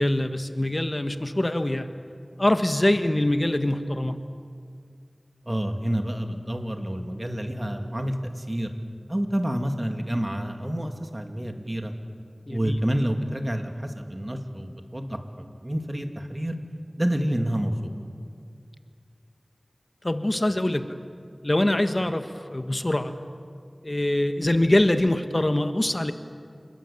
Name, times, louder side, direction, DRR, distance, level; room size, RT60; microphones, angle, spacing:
voice 1, 0.0-1.9 2.4-4.2 12.5-12.8 20.0-21.0 21.4-23.2 23.8-26.1, left 1 dB, 40° left, 8 dB, 1.4 m, -24 dB
voice 2, 5.5-8.7 9.1-11.9 12.5-16.6 17.0-17.9, equal, 30° right, 5 dB, 2.7 m, -28 dB
28.0 x 20.5 x 8.9 m, 2.2 s
wide cardioid pair, 45°, 0 cm